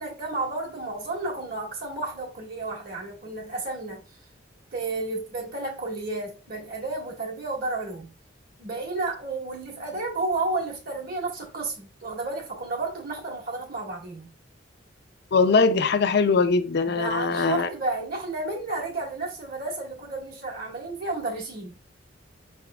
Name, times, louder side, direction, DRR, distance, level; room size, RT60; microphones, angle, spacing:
voice 1, 0.0-4.0 4.7-8.1 8.6-14.3 16.8-21.8, right 2 dB, 55° right, 1.6 m, -32 dB
voice 2, 15.3-17.7, left 4 dB, 60° left, 0.5 m, -21 dB
5.6 x 3.6 x 2.3 m
head